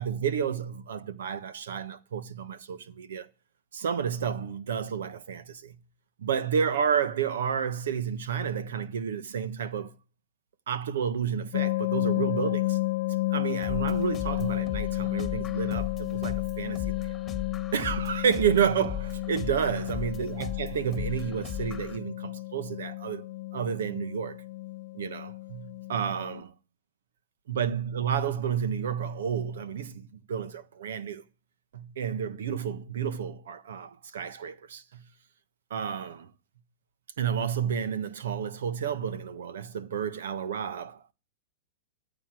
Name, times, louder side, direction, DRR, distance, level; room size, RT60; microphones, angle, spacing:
voice 1, 0.0-3.3 3.7-5.8 6.2-9.9 10.7-12.8 13.3-16.9 17.7-23.3 23.5-24.4 24.9-26.5 27.5-31.2 31.7-35.0 35.7-36.3 37.2-41.1, right 7 dB, 85° right, 1.4 m, -31 dB
sound 1, 11.5-26.4, left 19 dB, 55° left, 0.6 m, -32 dB
sound 2, 13.6-22.0, left 8 dB, 15° left, 1.7 m, -38 dB
14.5 x 8.5 x 7.6 m
supercardioid pair, 155°, 0 cm